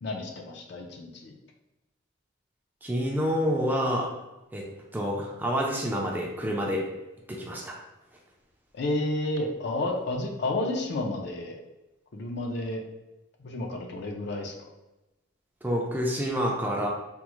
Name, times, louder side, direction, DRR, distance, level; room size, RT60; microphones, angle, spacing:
voice 1, 0.0-1.3 8.7-11.6 12.1-12.8 13.4-14.5, left 2 dB, 55° left, 1 dB, 0.4 m, -31 dB
voice 2, 2.8-4.1 4.5-4.6 4.9-6.8 7.3-7.8 15.6-16.9, equal, 10° right, -2 dB, 0.4 m, -28 dB
3.5 x 2.0 x 2.9 m, 1.0 s
head